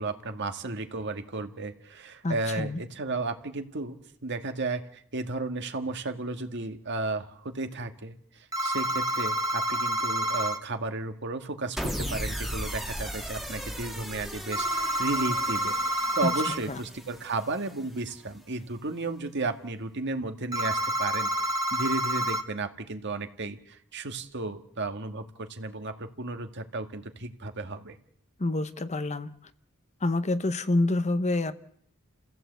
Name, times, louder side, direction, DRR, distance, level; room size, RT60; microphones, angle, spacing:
voice 1, 0.0-8.2 8.6-21.3 21.7-28.0, right 3 dB, 55° right, 6 dB, 1.9 m, -33 dB
voice 2, 2.2-2.8 16.2-16.3 16.7-16.8 28.4-29.5 30.0-31.5, left 2 dB, 35° left, 12 dB, 0.9 m, -27 dB
sound 1, 8.5-10.6 14.5-16.6 20.5-22.4, equal, 20° right, 1.6 m, -28 dB
sound 2, 11.8-18.1, equal, ahead, 1.9 m, -37 dB
30.0 x 15.5 x 8.1 m, 0.72 s
head